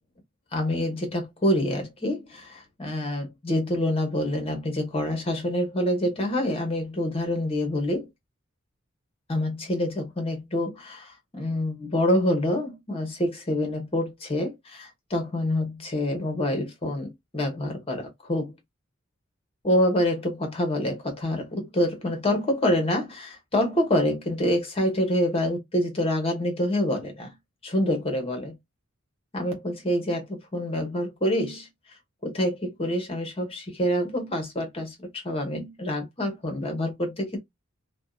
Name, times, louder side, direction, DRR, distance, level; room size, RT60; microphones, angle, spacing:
voice 1, 0.5-8.1 9.3-18.5 19.6-27.3 27.6-28.5 29.3-31.7 32.2-37.4, left 1 dB, 30° left, 1.0 m, -26 dB
2.6 x 2.2 x 2.3 m
head